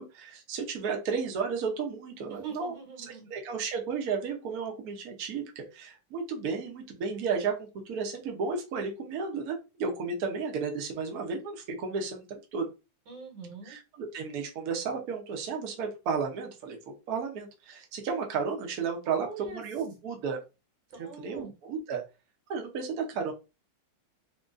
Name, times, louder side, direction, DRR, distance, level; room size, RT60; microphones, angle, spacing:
voice 1, 0.0-2.7 3.3-12.7 13.7-20.4 21.2-22.0 22.5-23.3, right 5 dB, 60° right, 2 dB, 1.2 m, -33 dB
voice 2, 2.3-3.3 13.1-13.8 19.0-19.6 20.9-21.5, right 4 dB, 80° right, 1 dB, 2.1 m, -43 dB
3.8 x 2.8 x 2.5 m, 0.28 s
omnidirectional pair, 2.0 m